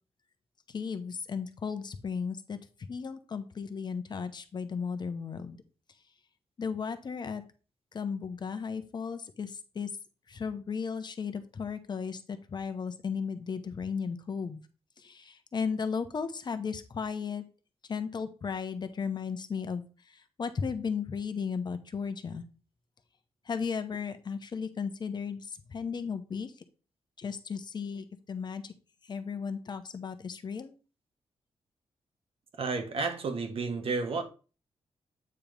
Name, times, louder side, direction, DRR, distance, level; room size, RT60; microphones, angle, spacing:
voice 1, 0.7-2.6 2.9-5.6 6.6-7.4 7.9-9.9 10.3-14.6 15.0-17.4 17.9-19.8 20.4-22.5 23.5-26.5 27.2-28.7 29.1-30.7, left 6 dB, 45° left, 0.8 m, -35 dB
voice 2, 32.6-34.2, right 4 dB, 60° right, 1.3 m, -31 dB
8.6 x 3.0 x 5.1 m
cardioid pair, 105°, 10 cm